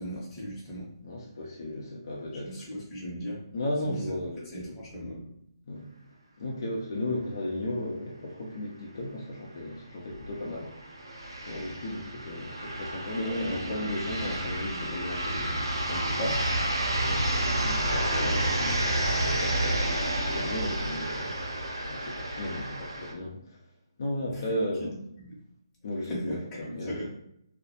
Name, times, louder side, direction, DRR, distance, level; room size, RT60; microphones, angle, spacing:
voice 1, 0.0-0.9 2.4-3.4 3.8-4.1 4.5-5.3 13.1-13.7 16.2-16.4 18.2-18.9 24.3-24.5 24.8-25.4 26.0-27.1, equal, 15° left, -7 dB, 0.8 m, -38 dB
voice 2, 1.0-2.7 3.5-4.4 4.6-4.8 5.7-5.9 6.4-10.7 11.4-16.3 17.0-17.2 17.6-18.5 19.4-21.4 21.8-23.4 24.0-24.9 25.8-26.4 26.7-26.9, left 1 dB, 50° left, -3 dB, 0.5 m, -35 dB
sound 1, 9.0-9.1 9.4-9.5 10.3-23.1, right 1 dB, 75° right, 0.6 m, -30 dB
2.2 x 2.0 x 2.8 m, 0.75 s
figure-of-eight pair, 140°, 2 cm